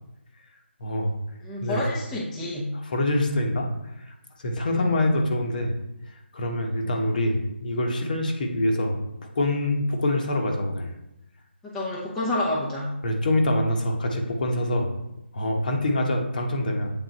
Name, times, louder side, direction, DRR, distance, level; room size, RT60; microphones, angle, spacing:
voice 1, 0.8-1.1 1.6-1.8 2.7-3.7 4.4-5.7 6.3-9.0 9.3-10.9 13.0-14.9 15.3-16.9, left 1 dB, 45° left, 2 dB, 1.1 m, -25 dB
voice 2, 1.4-2.7 4.7-4.9 11.6-12.9, left 1 dB, 5° left, -7 dB, 0.8 m, -29 dB
8.1 x 3.9 x 4.1 m, 0.89 s
figure-of-eight pair, 160°, 6 cm